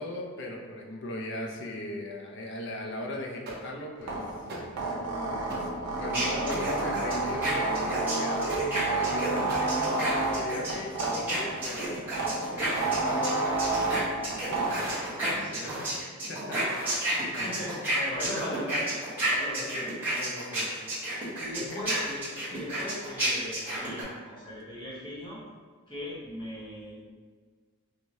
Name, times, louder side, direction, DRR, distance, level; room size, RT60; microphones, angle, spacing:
voice 1, 0.0-4.4 5.5-5.7 6.0-12.1 12.5-13.7 15.5-16.8 17.3-17.6 17.9-18.3 19.4-19.9 20.2-20.7 21.6-21.9 22.3-22.6, left 1 dB, 50° left, 0 dB, 0.5 m, -39 dB
sound 1, 3.5-3.6 4.5-4.6 5.5-5.6 6.5-6.6 7.4-7.5 8.5-8.6 9.5-9.6 11.4-11.9 12.6-12.9 13.5-14.0 14.6-15.0 15.6-16.0 16.6-17.0, right 2 dB, 45° right, 0.6 m, -40 dB
sound 2, 4.0-14.9, right 2 dB, 90° right, 0.7 m, -30 dB
sound 3, 6.1-13.3 13.6-24.0, right 1 dB, 10° right, 1.0 m, -31 dB
voice 2, 14.9-15.9 17.1-19.9 21.4-25.4 25.9-27.0, left 1 dB, 20° left, -7 dB, 0.9 m, -39 dB
4.5 x 2.1 x 2.7 m, 1.5 s
head